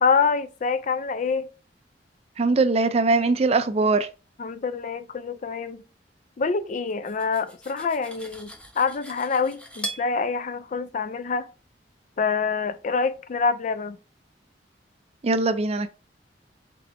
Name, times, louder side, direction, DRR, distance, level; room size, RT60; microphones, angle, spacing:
voice 1, 0.0-1.5 4.4-5.8 6.4-11.5 12.2-14.0, left 5 dB, 45° left, 0.4 m, -26 dB
voice 2, 2.4-4.1 15.2-15.9, right 3 dB, 35° right, 0.4 m, -21 dB
Cutlery silverware, 6.9-10.1, right 1 dB, 5° left, 0.8 m, -39 dB
4.4 x 4.2 x 2.6 m
head